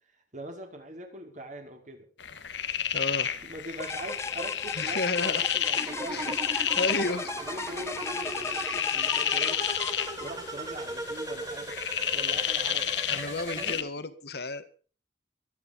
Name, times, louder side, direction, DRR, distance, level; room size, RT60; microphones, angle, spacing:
voice 1, 0.3-2.0 3.4-6.4 7.0-9.6 10.2-11.7 12.1-13.2 13.5-13.8, right 1 dB, 45° right, 3 dB, 5.0 m, -42 dB
sound 1, 2.2-13.8, left 9 dB, 90° left, 1.5 m, -31 dB
voice 2, 2.9-3.3 4.7-5.5 5.8-7.3 13.1-14.7, left 2 dB, 65° left, 11 dB, 1.7 m, -33 dB
sound 2, 3.8-10.7, left 3 dB, 15° left, 0.8 m, -38 dB
sound 3, 5.8-13.8, right 2 dB, 20° right, 2.2 m, -38 dB
24.0 x 9.6 x 5.4 m, 0.41 s
head